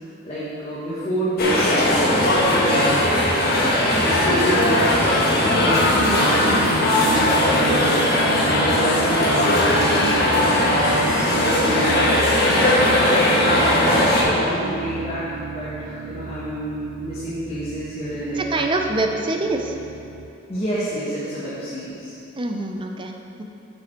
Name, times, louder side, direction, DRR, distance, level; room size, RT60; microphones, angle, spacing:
voice 1, 0.2-1.8 2.4-10.1 11.1-11.9 12.6-18.4 20.5-22.2, equal, 30° left, -10 dB, 1.4 m, -29 dB
sound 1, 1.4-14.2, left 1 dB, 50° left, 1.4 m, -18 dB
sound 2, 6.0-20.3, right 6 dB, 80° right, 0.4 m, -33 dB
voice 2, 18.3-19.8 22.4-23.4, right 2 dB, 25° right, 3 dB, 0.5 m, -25 dB
9.2 x 5.4 x 4.5 m, 2.8 s
head